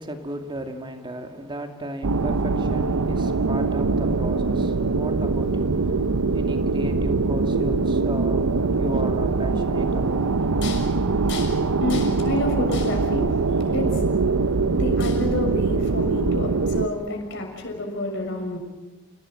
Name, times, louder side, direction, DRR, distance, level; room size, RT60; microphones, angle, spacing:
voice 1, 0.0-10.2, equal, 20° right, 2.3 m, -35 dB
sound 1, 2.0-16.9, right 3 dB, 90° right, 0.8 m, -23 dB
voice 2, 10.5-18.6, left 2 dB, 55° left, 6.3 m, -30 dB
29.0 x 18.0 x 7.7 m
head